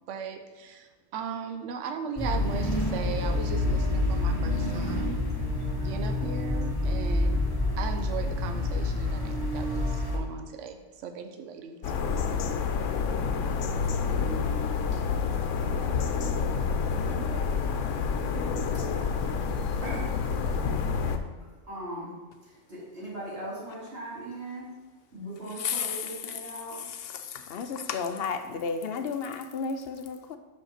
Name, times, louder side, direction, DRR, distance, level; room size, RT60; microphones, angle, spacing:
voice 1, 0.1-5.2 5.8-7.5 7.8-11.9, right 6 dB, 80° right, 7 dB, 1.0 m, -37 dB
sound 1, 2.2-10.2, left 2 dB, 20° left, 1.1 m, -28 dB
sound 2, 11.8-21.2, left 5 dB, 85° left, 1.0 m, -28 dB
voice 2, 14.0-16.1 17.0-17.5 18.4-19.5 19.8-20.3 21.4-24.7 25.1-26.9, right 1 dB, 55° right, -7 dB, 3.1 m, -40 dB
voice 3, 25.6-26.1 27.2-30.4, left 6 dB, 60° left, 8 dB, 0.8 m, -32 dB
5.8 x 5.4 x 5.6 m, 1.4 s
omnidirectional pair, 1.3 m